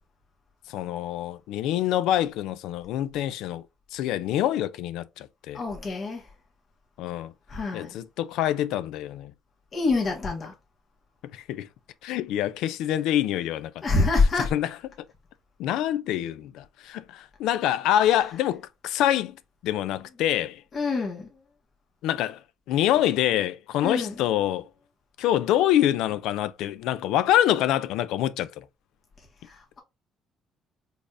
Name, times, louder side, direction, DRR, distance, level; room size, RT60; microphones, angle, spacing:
voice 1, 0.7-3.6 3.9-5.6 7.0-7.3 7.7-9.3 11.3-11.7 12.0-13.7 14.4-14.7 15.6-19.4 19.6-20.6 22.0-22.4 22.7-24.7 25.2-28.6, left 12 dB, 85° left, 0.3 m, -25 dB
voice 2, 5.5-6.3 7.5-7.9 9.7-10.5 13.8-14.5 20.7-21.3 23.8-24.1 29.5-29.8, left 3 dB, 45° left, 1.5 m, -25 dB
4.1 x 3.5 x 2.6 m
cardioid pair, 90°, 0 cm